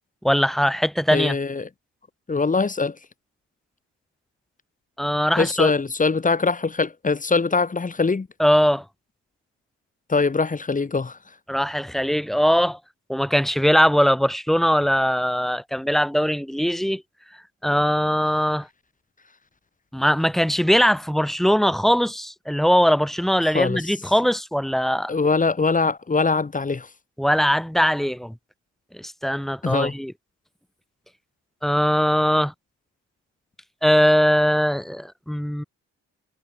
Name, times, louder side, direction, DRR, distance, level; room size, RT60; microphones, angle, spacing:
voice 1, 0.2-1.4 5.0-5.7 8.4-8.8 11.5-12.8 13.1-17.0 17.6-18.7 19.9-25.1 27.2-28.3 28.9-30.1 31.6-32.5 33.8-35.6, equal, ahead, 4.4 m, -20 dB
voice 2, 1.1-1.7 2.3-3.0 5.4-8.3 10.1-11.2 23.5-23.8 25.1-26.9 29.6-29.9, left 4 dB, 25° left, 3.0 m, -22 dB
cardioid pair, 90°, 30 cm